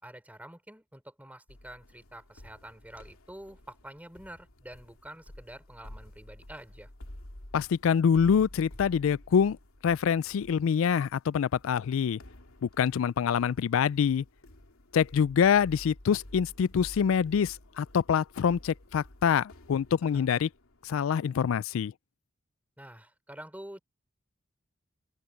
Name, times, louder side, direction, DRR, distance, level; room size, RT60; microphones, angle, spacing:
voice 1, 0.0-6.9 20.1-20.3 22.8-23.8, right 1 dB, 5° right, 4.6 m, -47 dB
sound 1, 1.5-21.0, left 1 dB, 80° left, 2.5 m, -51 dB
voice 2, 7.5-9.6 9.8-12.2 12.6-14.2 14.9-20.5 20.9-21.9, left 7 dB, 65° left, 0.3 m, -25 dB
head